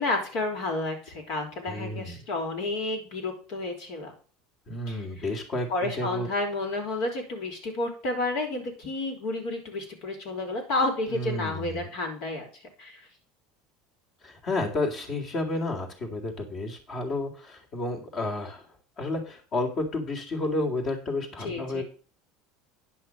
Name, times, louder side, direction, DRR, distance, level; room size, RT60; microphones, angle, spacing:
voice 1, 0.0-4.1 4.9-5.2 5.7-12.5 12.8-13.0 21.4-21.8, left 2 dB, 70° left, 2 dB, 4.9 m, -31 dB
voice 2, 1.7-2.2 4.7-6.3 11.1-11.8 14.2-18.6 19.0-21.8, left 2 dB, 45° left, 2 dB, 3.9 m, -31 dB
10.5 x 5.9 x 6.4 m, 0.38 s
supercardioid pair, 110°, 0 cm